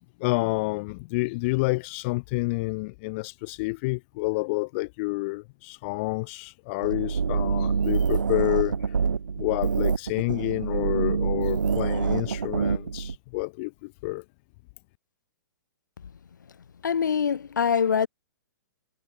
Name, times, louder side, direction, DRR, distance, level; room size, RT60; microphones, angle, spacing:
voice 1, 0.0-8.8 9.4-14.2, left 25 dB, 40° left, 1.0 m, -29 dB
sound 1, 6.8-13.2, right 6 dB, 80° right, 1.0 m, -26 dB
voice 2, 16.8-18.1, left 7 dB, 70° left, 2.8 m, -23 dB
figure-of-eight pair, 115°, 10 cm